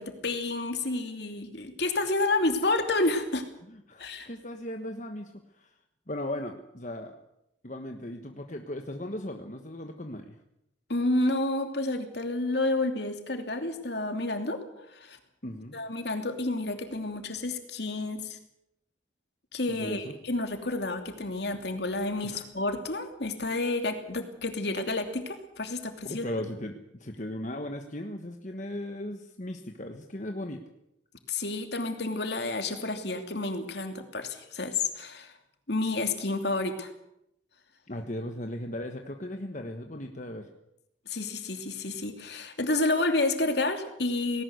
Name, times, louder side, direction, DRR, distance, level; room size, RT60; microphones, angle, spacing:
voice 1, 0.0-3.4 4.0-4.3 10.9-14.6 14.9-15.2 15.7-18.4 19.5-26.2 31.3-35.3 35.7-36.9 41.1-44.4, left 2 dB, 60° left, 6 dB, 2.8 m, -30 dB
voice 2, 3.7-5.7 6.1-7.2 7.6-10.4 15.4-15.8 19.7-20.1 22.2-22.4 26.0-30.6 37.9-40.5, left 1 dB, 40° left, 4 dB, 1.4 m, -37 dB
19.0 x 18.0 x 8.2 m, 0.80 s
head